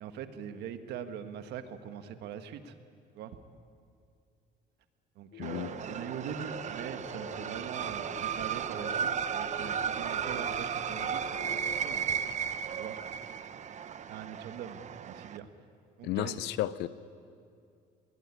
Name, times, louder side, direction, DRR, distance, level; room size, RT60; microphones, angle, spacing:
voice 1, 0.0-2.7 3.1-3.4 5.1-12.3 12.8-13.0 14.1-15.5 16.0-16.5, right 8 dB, 80° right, 9 dB, 1.7 m, -42 dB
sound 1, 5.3-11.7, left 3 dB, 75° left, 5.0 m, -47 dB
voice 2, 5.4-5.7 16.0-16.9, left 14 dB, 90° left, 16 dB, 0.9 m, -32 dB
sound 2, 5.4-15.4, right 7 dB, 45° right, 1.0 m, -35 dB
21.5 x 20.0 x 9.9 m, 2.4 s
cardioid pair, 110°, 17 cm